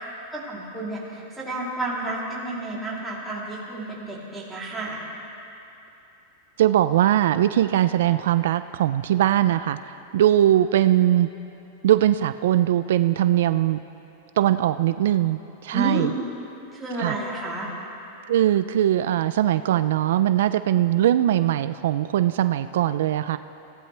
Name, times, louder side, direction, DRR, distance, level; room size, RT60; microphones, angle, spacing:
voice 1, 0.3-5.0 15.7-16.1 16.7-17.7, right 2 dB, 5° right, -7 dB, 3.4 m, -31 dB
voice 2, 6.6-11.3 11.8-13.8 14.4-16.1 17.0-17.2 18.3-23.4, right 12 dB, 75° right, 12 dB, 0.4 m, -21 dB
25.0 x 16.5 x 3.4 m, 2.9 s
supercardioid pair, 155°, 0 cm